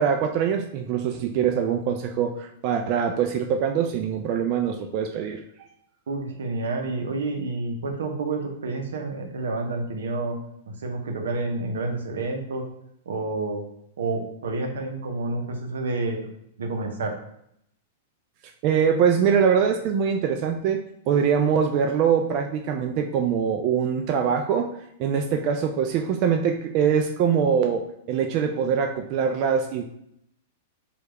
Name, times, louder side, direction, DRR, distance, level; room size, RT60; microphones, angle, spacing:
voice 1, 0.0-5.4 18.6-20.8 21.1-24.7 25.0-29.8, right 7 dB, 45° right, 3 dB, 0.3 m, -23 dB
voice 2, 6.1-10.4 10.7-12.7 13.1-13.6 14.0-16.3 16.6-17.2, right 3 dB, 85° right, 3 dB, 0.6 m, -29 dB
3.2 x 2.3 x 3.2 m, 0.75 s
hypercardioid pair, 125°, 0 cm